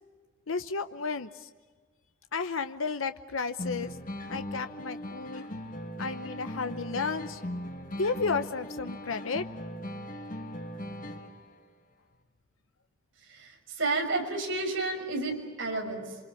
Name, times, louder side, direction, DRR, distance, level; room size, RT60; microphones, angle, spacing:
voice 1, 0.5-1.5 2.3-4.0 4.3-5.4 6.0-7.4 8.0-9.4, left 4 dB, 80° left, 9 dB, 0.9 m, -32 dB
sound 1, 3.6-11.6, left 1 dB, 40° left, 2.1 m, -39 dB
voice 2, 13.3-16.2, right 3 dB, 65° right, 2 dB, 6.1 m, -31 dB
28.0 x 25.0 x 7.1 m, 1.4 s
head